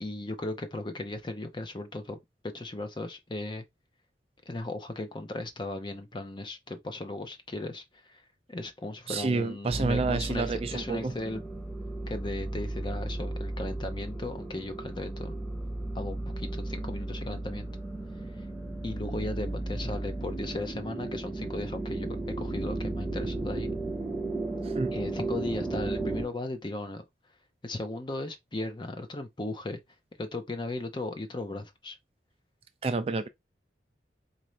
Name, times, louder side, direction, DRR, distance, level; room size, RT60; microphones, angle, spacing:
voice 1, 0.0-3.6 4.5-8.2 8.5-11.4 12.1-15.4 15.9-17.7 18.8-23.7 24.9-27.0 27.6-29.8 30.2-32.0, left 2 dB, 25° left, 0.6 m, -36 dB
voice 2, 9.1-11.1 24.6-24.9 32.8-33.3, right 3 dB, 30° right, 0.3 m, -29 dB
sound 1, 9.7-26.3, right 2 dB, 5° left, 1.0 m, -35 dB
4.2 x 2.6 x 3.1 m
head